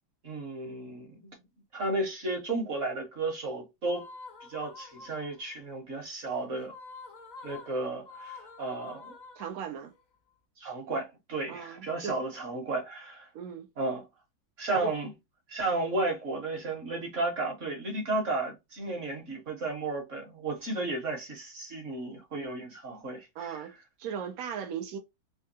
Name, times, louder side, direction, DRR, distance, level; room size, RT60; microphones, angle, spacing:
voice 1, 0.2-1.4 1.7-4.1 4.5-6.7 7.4-9.1 10.6-13.3 13.8-14.0 14.6-15.1 15.5-23.6, right 2 dB, 50° right, 1.2 m, -33 dB
sound 1, 3.9-5.5 6.6-10.0, left 4 dB, 90° left, 0.4 m, -48 dB
voice 2, 9.4-9.9 11.5-12.2 13.3-13.7 14.8-14.9 23.3-23.7 24.0-25.0, right 7 dB, 75° right, 0.8 m, -37 dB
3.4 x 2.3 x 2.7 m
omnidirectional pair, 2.1 m